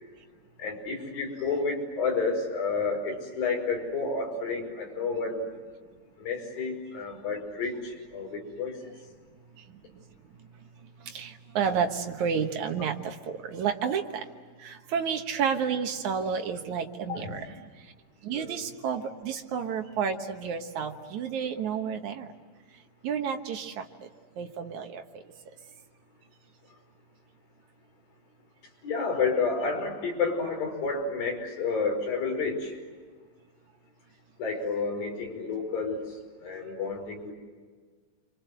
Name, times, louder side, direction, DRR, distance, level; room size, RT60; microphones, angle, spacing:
voice 1, 0.6-5.5 6.2-8.8 17.1-17.3 18.3-18.6 28.8-32.7 34.4-36.0 36.4-37.3, left 4 dB, 55° left, 1 dB, 6.8 m, -30 dB
voice 2, 11.0-14.3 14.6-17.9 18.2-22.3 23.0-24.1 24.4-25.2, right 7 dB, 70° right, 5 dB, 1.8 m, -31 dB
28.5 x 25.5 x 8.0 m, 1.5 s
omnidirectional pair, 5.2 m